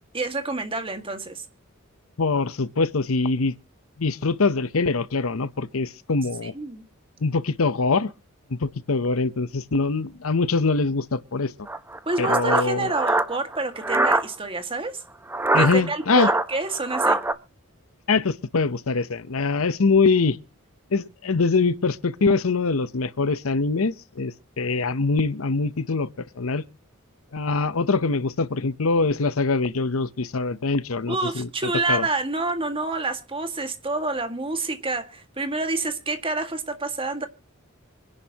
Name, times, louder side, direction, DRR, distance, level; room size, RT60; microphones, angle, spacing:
voice 1, 0.1-1.4 6.4-6.8 12.1-15.0 15.6-17.2 31.1-37.3, right 3 dB, 25° right, 1.9 m, -28 dB
voice 2, 2.2-3.5 4.0-6.5 7.2-8.1 8.5-11.5 12.2-12.9 15.5-16.3 18.1-20.4 20.9-26.6 27.3-31.5 31.9-32.1, left 4 dB, 80° left, 0.8 m, -23 dB
sound 1, 11.7-14.2 15.3-17.3, right 2 dB, 10° right, 0.8 m, -23 dB
25.5 x 10.5 x 2.9 m
head